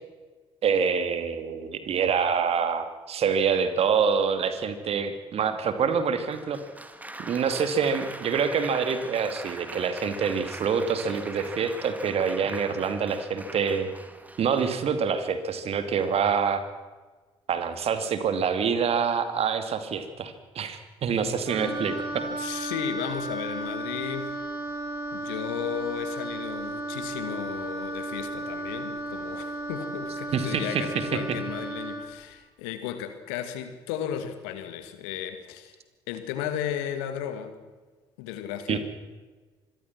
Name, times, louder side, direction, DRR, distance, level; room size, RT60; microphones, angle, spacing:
voice 1, 0.6-6.6 7.2-13.9 14.4-16.6 17.5-22.2 30.3-31.2 38.7-38.8, right 6 dB, 50° right, 9 dB, 2.6 m, -26 dB
Applause, 6.3-15.2 16.0-16.4, right 1 dB, 10° right, 2.5 m, -42 dB
Wind instrument woodwind instrument, 21.5-32.1, right 2 dB, 75° right, 2.9 m, -34 dB
voice 2, 22.2-24.3 25.1-35.8 36.1-37.6 38.2-38.8, left 9 dB, 70° left, 10 dB, 2.1 m, -34 dB
26.0 x 22.5 x 6.1 m, 1.3 s
figure-of-eight pair, 50°, 13 cm